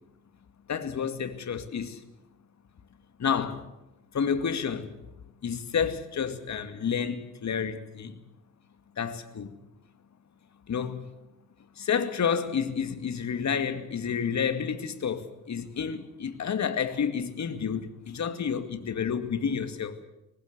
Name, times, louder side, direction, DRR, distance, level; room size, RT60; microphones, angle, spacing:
voice 1, 0.7-2.0 3.2-3.6 4.1-4.9 5.4-8.2 9.0-9.6 10.7-11.1 11.8-20.0, left 7 dB, 35° left, 2.4 m, -30 dB
24.5 x 19.0 x 8.2 m
hypercardioid pair, 65°, 50 cm